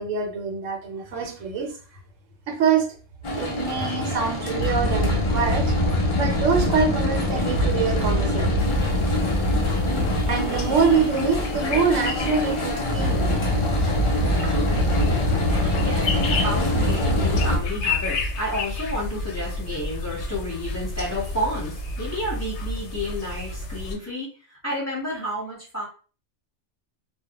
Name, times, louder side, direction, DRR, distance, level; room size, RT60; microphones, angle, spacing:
voice 1, 0.0-1.7 2.5-2.9 3.4-8.4 10.3-13.4 14.3-14.6, right 5 dB, 85° right, 1.0 m, -25 dB
sound 1, 3.2-17.6, left 1 dB, 55° left, 0.3 m, -23 dB
sound 2, 8.6-23.9, left 2 dB, 70° left, 0.8 m, -31 dB
voice 2, 14.6-25.9, equal, 15° left, 0.8 m, -31 dB
2.3 x 2.1 x 2.8 m
omnidirectional pair, 1.3 m